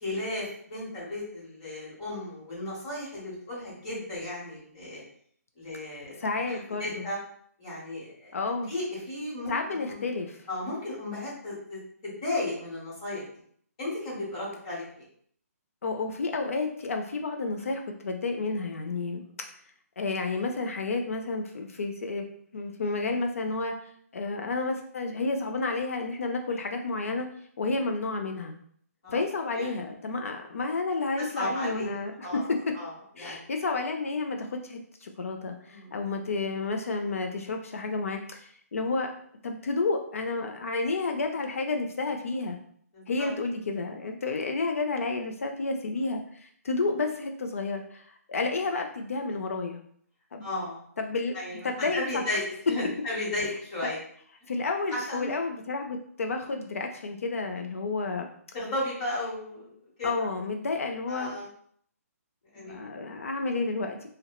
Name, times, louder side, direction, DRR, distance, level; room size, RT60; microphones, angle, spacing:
voice 1, 0.0-5.0 5.6-7.2 7.6-8.3 8.7-9.5 9.9-10.0 10.5-13.2 13.8-15.0 29.0-29.2 29.5-29.7 31.2-31.9 32.2-33.4 35.7-36.0 42.9-43.3 48.3-48.4 50.4-50.8 51.3-52.4 52.7-54.0 54.9-55.3 58.5-59.7 60.0-60.1 60.4-60.5 61.1-61.5 62.5-62.8, left 1 dB, 25° left, -7 dB, 1.0 m, -35 dB
voice 2, 6.2-7.1 8.3-8.7 9.5-10.4 15.8-19.2 20.0-22.2 22.5-23.7 24.1-27.3 27.6-28.5 29.1-32.7 33.2-39.1 39.4-42.6 43.1-49.8 50.3-50.4 51.0-51.3 51.6-52.2 53.8-53.9 54.5-58.3 60.0-61.3 62.6-64.1, left 3 dB, 60° left, 4 dB, 0.3 m, -31 dB
2.9 x 2.0 x 2.2 m, 0.62 s
hypercardioid pair, 175°, 9 cm